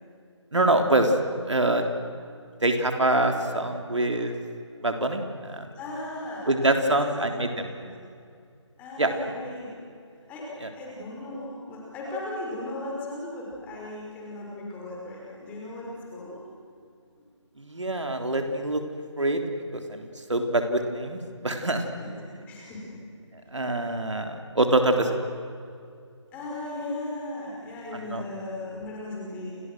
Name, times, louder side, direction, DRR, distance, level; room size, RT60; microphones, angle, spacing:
voice 1, 0.5-1.1 1.5-1.9 2.6-4.3 4.8-5.7 6.5-7.7 9.0-9.1 10.6-10.7 17.7-18.8 19.2-19.4 19.7-21.2 21.4-21.8 23.5-25.1 28.1-28.2, right 2 dB, 70° right, 5 dB, 3.7 m, -24 dB
voice 2, 5.7-8.0 8.8-9.7 10.3-16.4 21.9-23.0 26.3-29.6, left 2 dB, 10° left, -4 dB, 5.5 m, -37 dB
30.0 x 28.0 x 6.4 m, 2.3 s
figure-of-eight pair, 160°, 16 cm